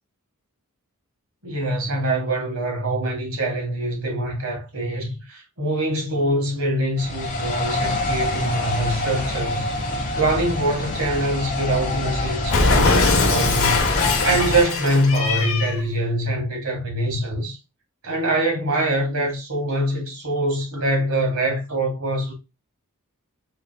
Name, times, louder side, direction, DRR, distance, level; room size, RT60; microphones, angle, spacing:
voice 1, 1.4-9.7 10.2-13.8 14.2-17.6 18.0-22.3, right 1 dB, 65° right, 1.8 m, -24 dB
sound 1, 7.0-14.6, left 2 dB, 35° left, 1.1 m, -26 dB
Cat, 12.5-15.8, left 3 dB, 65° left, 1.1 m, -21 dB
4.8 x 3.4 x 2.3 m
head